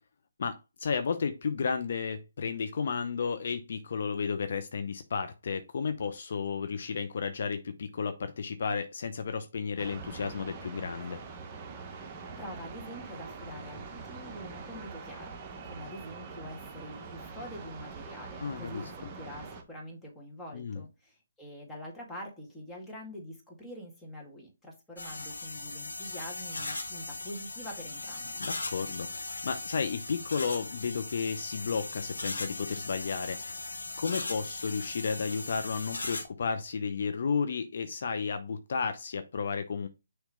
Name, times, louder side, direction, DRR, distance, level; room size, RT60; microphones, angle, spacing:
voice 1, 0.4-11.2 18.4-18.8 20.5-20.8 28.4-39.9, left 5 dB, 55° left, 0.7 m, -33 dB
sound 1, 9.8-19.6, right 4 dB, 25° right, 1.2 m, -44 dB
voice 2, 12.4-28.4, equal, 10° left, 1.9 m, -45 dB
sound 2, 25.0-36.2, left 2 dB, 85° left, 1.5 m, -38 dB
6.3 x 3.2 x 5.0 m
figure-of-eight pair, 150°, 0 cm